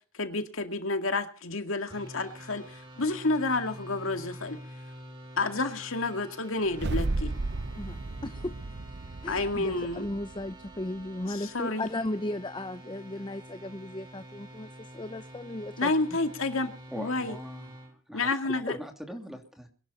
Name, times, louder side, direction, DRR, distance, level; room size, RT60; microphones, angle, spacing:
voice 1, 0.1-4.6 5.4-7.3 9.3-10.1 11.3-11.9 15.8-17.4 18.1-18.8, left 3 dB, 80° left, 7 dB, 2.2 m, -30 dB
sound 1, 1.9-17.9, right 1 dB, 25° right, 3.9 m, -47 dB
sound 2, 6.7-11.0, right 2 dB, 55° right, 0.7 m, -34 dB
voice 2, 7.7-8.5 9.2-15.9, left 1 dB, 25° left, 10 dB, 0.8 m, -36 dB
voice 3, 16.9-19.7, equal, ahead, 4 dB, 2.9 m, -42 dB
23.0 x 12.0 x 4.2 m, 0.39 s
head